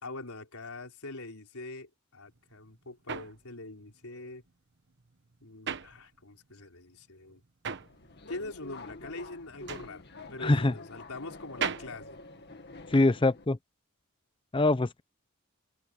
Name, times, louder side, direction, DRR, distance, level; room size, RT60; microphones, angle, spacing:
voice 1, 0.0-4.4 5.4-7.4 8.3-10.0 10.3-12.2, left 2 dB, 75° left, 4.5 m, -43 dB
sound 1, 2.3-6.6 6.9-13.1, right 6 dB, 55° right, 1.2 m, -40 dB
Subway metro underground, 7.8-13.5, left 2 dB, 50° left, 2.0 m, -47 dB
voice 2, 10.4-10.7 12.9-13.6 14.5-15.0, left 2 dB, 25° left, 0.6 m, -23 dB
head